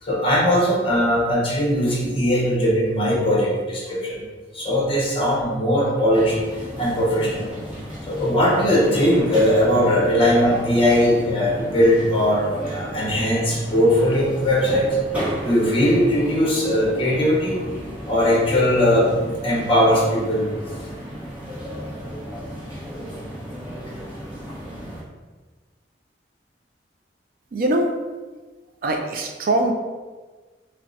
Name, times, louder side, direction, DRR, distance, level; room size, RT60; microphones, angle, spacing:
voice 1, 0.0-4.2 4.5-6.4 6.8-7.5 8.0-15.0 15.4-17.6 18.0-20.5, equal, 30° left, -5 dB, 1.0 m, -19 dB
sound 1, 6.1-25.0, equal, 10° right, 1.0 m, -34 dB
voice 2, 27.5-27.9 28.8-29.7, right 1 dB, 50° right, 3 dB, 0.4 m, -22 dB
5.6 x 2.1 x 2.7 m, 1.3 s
head